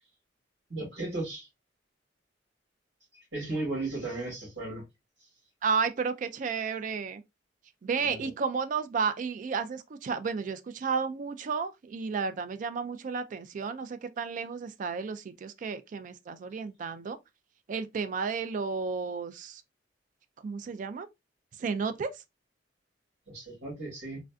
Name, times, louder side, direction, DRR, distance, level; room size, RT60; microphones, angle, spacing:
voice 1, 0.7-1.5 3.1-4.8 5.2-5.3 8.0-8.3 23.3-24.2, right 2 dB, 80° right, 1.8 m, -36 dB
voice 2, 5.6-7.2 7.8-17.2 17.7-19.6 20.4-21.1 21.6-22.1, right 5 dB, 45° right, 0.3 m, -32 dB
3.2 x 2.5 x 2.3 m
head